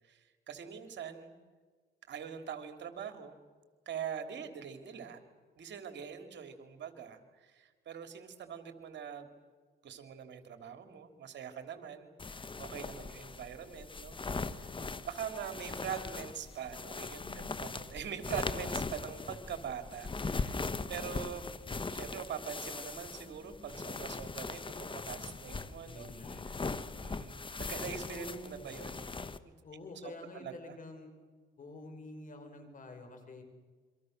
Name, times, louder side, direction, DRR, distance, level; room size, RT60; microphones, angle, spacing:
voice 1, 0.0-1.4 2.1-3.4 3.8-5.2 5.6-9.3 9.8-14.2 14.5-14.7 15.0-21.5 21.9-26.1 27.0-29.1 29.4-29.5 30.0-30.8, right 8 dB, 65° right, 7 dB, 3.2 m, -43 dB
sound 1, 12.2-29.4, left 3 dB, 25° left, 1.3 m, -40 dB
voice 2, 17.2-17.6 25.8-26.5 28.1-28.6 29.6-31.1 31.6-33.4, left 2 dB, 40° left, 5 dB, 6.0 m, -48 dB
28.5 x 25.0 x 6.7 m, 1.4 s
cardioid pair, 90°, 20 cm